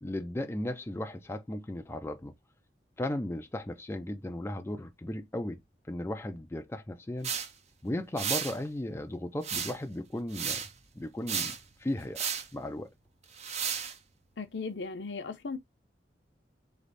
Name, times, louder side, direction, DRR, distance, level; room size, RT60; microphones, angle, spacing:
voice 1, 0.0-2.3 3.0-5.6 5.9-7.3 7.8-10.6 11.0-11.5 11.8-12.2 12.5-12.9, left 1 dB, 15° left, 0.4 m, -36 dB
sound 1, 7.2-7.5 8.2-8.6 9.4-9.9 10.3-10.7 11.3-11.6 12.1-12.5 13.4-13.9, right 7 dB, 35° right, 0.6 m, -33 dB
voice 2, 14.4-15.6, left 4 dB, 70° left, 0.8 m, -37 dB
3.6 x 3.3 x 4.0 m
head